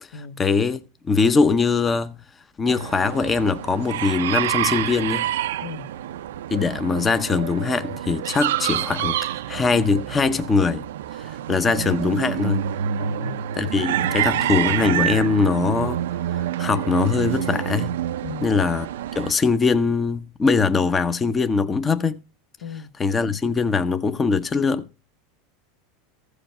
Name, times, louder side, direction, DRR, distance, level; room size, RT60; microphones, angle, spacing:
voice 1, 0.4-2.2 2.6-5.3 6.5-10.8 11.1-12.6 13.6-16.0 16.3-18.0 18.4-18.9 19.2-22.2 23.0-24.9, left 4 dB, 20° left, 0.6 m, -22 dB
sound 1, 2.7-19.3, right 11 dB, 85° right, 0.4 m, -27 dB
voice 2, 5.6-5.9 13.0-13.4 14.0-14.5 18.2-18.6 22.6-22.9, left 5 dB, 85° left, 1.2 m, -36 dB
14.5 x 5.0 x 5.5 m
supercardioid pair, 135°, 0 cm